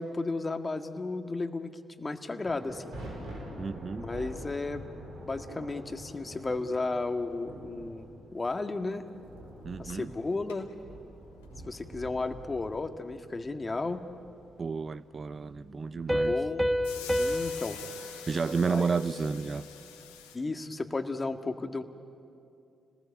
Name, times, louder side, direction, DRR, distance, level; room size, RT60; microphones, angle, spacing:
voice 1, 0.0-1.7 2.0-2.8 4.0-4.8 5.3-9.0 9.8-10.7 11.7-14.0 15.9-16.6 17.1-17.8 18.7-18.8 20.3-21.8, left 3 dB, 30° left, 1.9 m, -34 dB
sound 1, 2.4-17.8, equal, 70° right, 6.6 m, -47 dB
voice 2, 3.6-4.1 9.6-10.1 14.6-16.3 18.3-19.7, right 5 dB, 45° right, 0.6 m, -31 dB
sound 2, 9.2-9.3 9.6-9.7 9.9-10.7 11.2-11.8 12.7-12.8 16.8-20.4, left 8 dB, 90° left, 1.9 m, -46 dB
Piano, 16.1-19.5, left 1 dB, 10° right, 2.0 m, -31 dB
29.5 x 20.0 x 9.7 m
hypercardioid pair, 40°, 0 cm